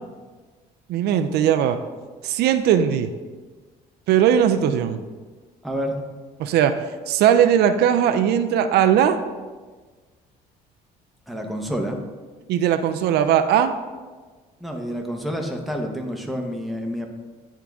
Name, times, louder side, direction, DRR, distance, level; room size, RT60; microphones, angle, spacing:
voice 1, 0.9-1.8 2.2-3.1 4.1-5.0 6.4-6.7 7.1-9.2 12.5-13.7, right 9 dB, 75° right, 8 dB, 0.4 m, -19 dB
voice 2, 5.6-6.0 11.3-12.0 14.6-17.1, equal, ahead, 1 dB, 0.9 m, -28 dB
9.8 x 3.7 x 3.5 m, 1.4 s
cardioid pair, 110°, 17 cm